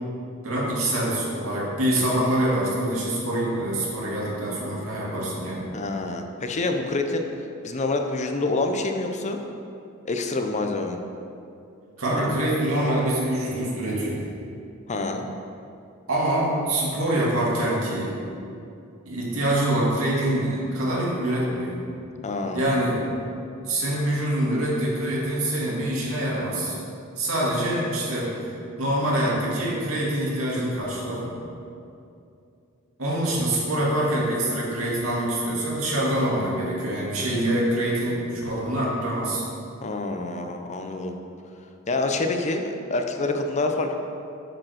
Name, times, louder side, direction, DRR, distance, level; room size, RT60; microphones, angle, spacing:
voice 1, 0.4-5.7 12.0-14.2 16.1-18.2 19.1-21.8 22.5-23.0 23.6-26.8 27.2-28.3 28.8-31.3 33.0-39.4, right 1 dB, 90° right, -5 dB, 2.1 m, -25 dB
voice 2, 5.7-7.2 7.6-9.4 10.0-11.0 12.2-12.3 14.9-15.3 22.2-22.8 39.8-41.1 41.9-43.9, left 2 dB, 35° left, 5 dB, 0.6 m, -27 dB
7.5 x 5.2 x 6.3 m, 2.6 s
head